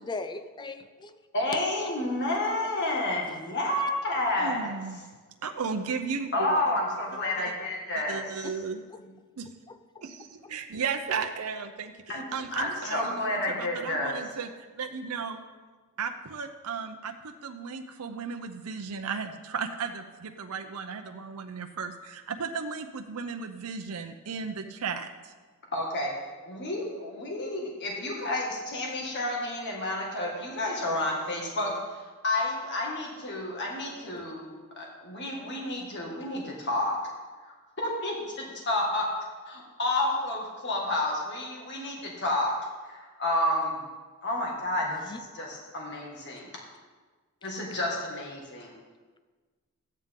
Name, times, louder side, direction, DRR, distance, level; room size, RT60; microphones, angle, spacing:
voice 1, 0.0-1.2 1.8-1.9 8.4-8.6 8.9-9.0 9.7-10.0 44.9-45.2, left 3 dB, 20° left, 10 dB, 0.4 m, -39 dB
voice 2, 1.3-4.7 6.3-8.5 12.1-12.2 12.5-14.1 25.7-26.1 26.5-31.7 32.2-36.9 37.5-39.1 39.5-42.5 42.9-43.8 44.2-46.5 47.4-48.7, left 1 dB, 55° left, -2 dB, 1.8 m, -30 dB
voice 3, 4.4-5.0 5.4-6.6 8.1-8.8 9.4-9.5 10.0-14.5 14.8-15.4 16.0-25.3, right 5 dB, 85° right, 6 dB, 0.6 m, -35 dB
13.5 x 9.0 x 3.7 m, 1.4 s
head